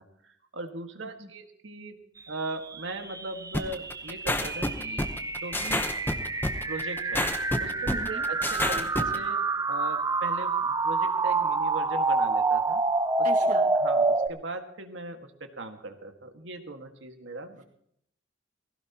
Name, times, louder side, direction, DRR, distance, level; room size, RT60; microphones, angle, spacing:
voice 1, 0.0-2.0 2.3-5.1 5.4-5.9 6.6-7.3 7.6-12.8 13.2-17.6, right 2 dB, 85° right, 5 dB, 1.7 m, -39 dB
sound 1, 2.4-14.3, right 3 dB, 20° right, 0.5 m, -27 dB
sound 2, 3.5-9.2, left 1 dB, 10° left, 0.9 m, -28 dB
voice 2, 7.9-8.3 13.2-13.7, right 1 dB, 40° right, 2 dB, 1.9 m, -38 dB
19.0 x 16.5 x 2.9 m, 0.70 s
head